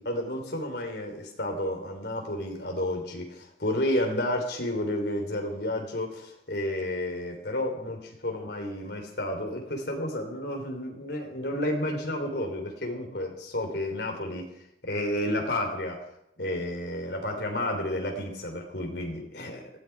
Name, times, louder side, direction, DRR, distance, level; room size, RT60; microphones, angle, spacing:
voice 1, 0.0-14.5 14.8-16.0 16.4-19.7, left 1 dB, 65° left, 2 dB, 3.4 m, -31 dB
20.0 x 14.0 x 4.7 m, 0.78 s
head